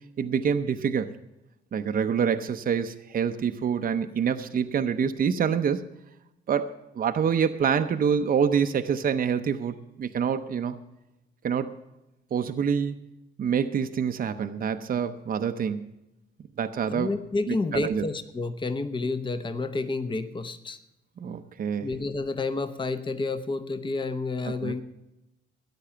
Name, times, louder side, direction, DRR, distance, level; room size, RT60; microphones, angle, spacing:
voice 1, 0.2-1.1 1.7-5.8 6.5-10.8 11.4-11.8 12.3-13.0 13.4-15.9 16.6-17.1 17.5-18.0 21.2-21.9 24.4-24.7, right 7 dB, 45° right, 8 dB, 0.7 m, -26 dB
voice 2, 16.9-20.8 21.8-24.8, left 3 dB, 25° left, 10 dB, 0.9 m, -30 dB
13.5 x 9.9 x 5.7 m, 0.91 s
cardioid pair, 90°, 20 cm